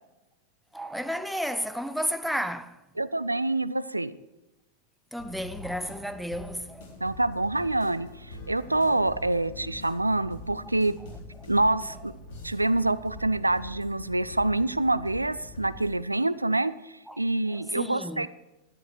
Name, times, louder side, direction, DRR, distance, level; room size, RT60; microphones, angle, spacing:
voice 1, 0.7-2.8 5.1-7.0 17.1-17.2 17.5-18.3, equal, ahead, 0.6 m, -32 dB
voice 2, 3.0-4.1 7.0-10.9 11.5-12.1 12.4-18.3, right 2 dB, 85° right, 0.3 m, -26 dB
sound 1, 5.2-15.9, left 2 dB, 50° left, 4.1 m, -44 dB
12.5 x 10.5 x 4.6 m
figure-of-eight pair, 90°, 0 cm